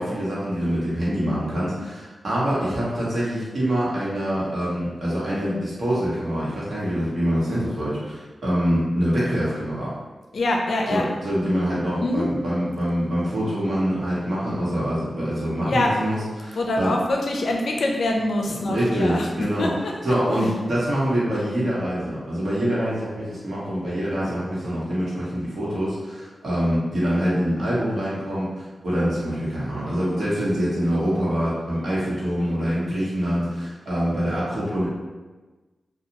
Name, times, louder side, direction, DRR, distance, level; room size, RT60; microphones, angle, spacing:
voice 1, 0.0-10.0 10.9-17.0 18.7-19.7 20.0-34.9, equal, 75° right, -8 dB, 1.1 m, -25 dB
voice 2, 10.3-11.0 12.0-12.3 15.6-15.9 16.6-19.3 19.6-19.9, left 1 dB, 80° left, 1 dB, 0.4 m, -24 dB
2.6 x 2.3 x 2.9 m, 1.2 s
cardioid pair, 55°, 0 cm